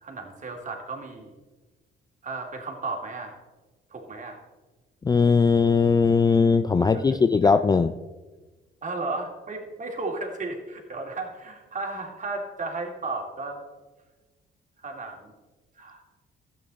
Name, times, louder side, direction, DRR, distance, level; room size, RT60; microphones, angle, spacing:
voice 1, 0.0-1.3 2.2-3.4 3.9-4.4 6.8-7.0 7.4-7.5 8.8-13.6 14.8-15.3 15.8-16.0, right 3 dB, 40° right, 2 dB, 2.3 m, -34 dB
voice 2, 5.0-7.9, left 5 dB, 20° left, 11 dB, 0.4 m, -19 dB
12.5 x 8.6 x 4.0 m, 1.2 s
cardioid pair, 90°, 20 cm